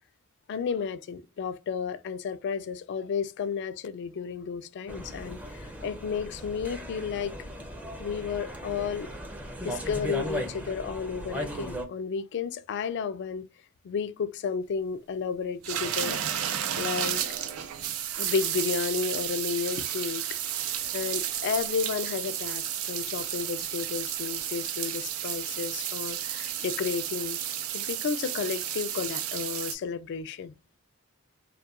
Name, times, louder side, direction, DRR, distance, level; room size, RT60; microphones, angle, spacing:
voice 1, 0.5-7.3 8.0-9.1 9.6-13.5 13.8-16.2 16.8-17.2 18.2-20.4 20.9-27.4 27.7-30.5, left 6 dB, 55° left, 0.3 m, -32 dB
sound 1, 4.9-11.8, equal, 5° right, 0.4 m, -37 dB
sound 2, 15.6-29.7, right 10 dB, 90° right, 0.4 m, -32 dB
2.2 x 2.2 x 2.8 m
head